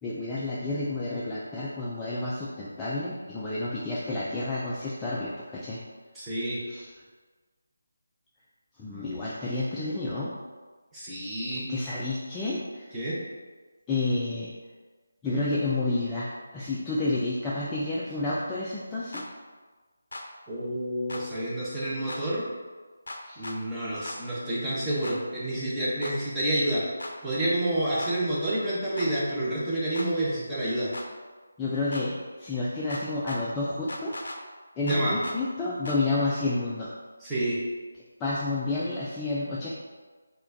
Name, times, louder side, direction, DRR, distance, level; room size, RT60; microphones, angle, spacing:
voice 1, 0.0-5.8 6.7-6.9 8.8-10.3 11.5-12.9 13.9-14.5 15.2-19.2 23.2-23.4 31.6-34.1 34.8-36.9 38.2-39.7, left 2 dB, 10° left, -8 dB, 0.3 m, -30 dB
voice 2, 6.1-6.6 10.9-11.6 12.9-13.2 20.5-22.5 23.4-26.8 27.2-30.9 34.8-35.2 37.2-37.6, right 1 dB, 5° right, -9 dB, 0.7 m, -29 dB
sound 1, 19.1-19.3 20.1-20.3 21.1-21.2 22.1-22.2 23.1-23.6 24.0-24.2 25.0-25.2 26.0-26.2 27.0-27.1 28.0-28.1 29.0-29.1 29.9-30.1 30.9-31.1 31.9-32.1 32.9-33.4 33.9-34.4 34.9-35.4 35.8-36.0, left 2 dB, 70° left, 0.5 m, -38 dB
4.2 x 2.2 x 2.6 m, 1.4 s
figure-of-eight pair, 165°, 0 cm